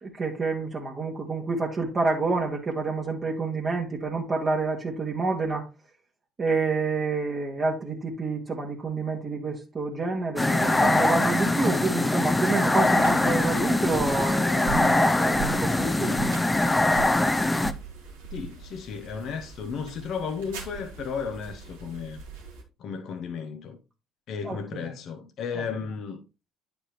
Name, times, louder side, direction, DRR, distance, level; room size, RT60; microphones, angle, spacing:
voice 1, 0.0-5.7 6.4-16.4 24.4-24.9 25.6-25.7, right 3 dB, 35° right, 1.7 m, -28 dB
sound 1, 10.4-17.7, left 2 dB, 15° left, 0.7 m, -23 dB
sound 2, 12.9-22.6, right 5 dB, 80° right, 2.1 m, -41 dB
voice 2, 18.3-22.2 22.8-23.8 24.3-26.2, left 6 dB, 55° left, 0.8 m, -34 dB
9.9 x 5.2 x 3.1 m
hypercardioid pair, 55°, 0 cm